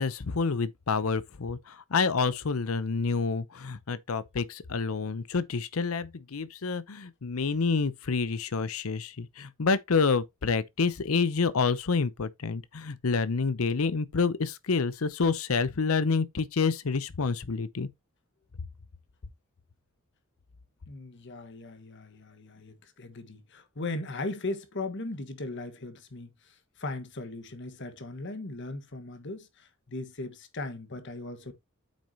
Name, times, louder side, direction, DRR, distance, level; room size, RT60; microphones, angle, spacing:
voice 1, 0.0-17.9, left 4 dB, 80° left, 0.7 m, -28 dB
voice 2, 20.9-31.5, left 2 dB, 60° left, 1.5 m, -38 dB
8.4 x 6.2 x 2.8 m
head